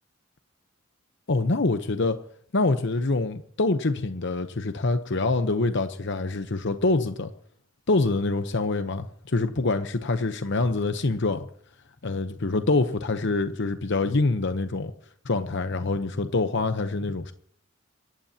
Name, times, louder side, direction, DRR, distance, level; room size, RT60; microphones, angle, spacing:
voice 1, 1.3-2.2 2.5-7.3 7.9-11.5 12.0-14.9 15.2-17.3, left 3 dB, 60° left, 9 dB, 0.9 m, -25 dB
27.5 x 14.5 x 2.9 m, 0.62 s
head